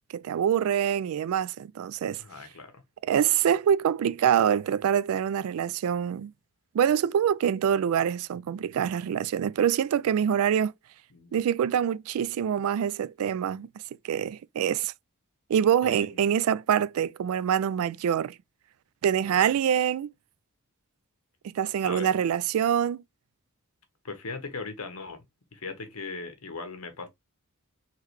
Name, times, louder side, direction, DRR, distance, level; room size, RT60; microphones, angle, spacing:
voice 1, 0.1-2.2 3.1-6.3 6.7-10.7 11.3-13.7 14.0-14.9 15.5-18.4 19.0-20.1 21.5-23.0, right 9 dB, 70° right, 0.3 m, -25 dB
voice 2, 2.2-2.8 11.1-11.4 15.8-16.2 19.2-19.6 21.8-22.1 24.0-25.2 25.5-27.1, left 4 dB, 75° left, 1.1 m, -39 dB
3.8 x 3.0 x 3.1 m
head